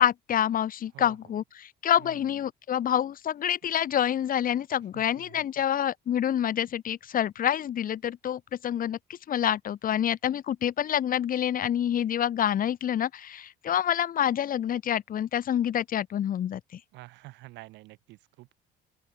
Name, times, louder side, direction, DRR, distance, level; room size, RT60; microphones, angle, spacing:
voice 1, 0.0-16.6, left 10 dB, 50° left, 2.6 m, -27 dB
voice 2, 0.9-1.3 2.0-2.2 4.9-5.6 16.9-18.5, right 19 dB, 90° right, 7.9 m, -49 dB
open air
cardioid pair, 115°, 18 cm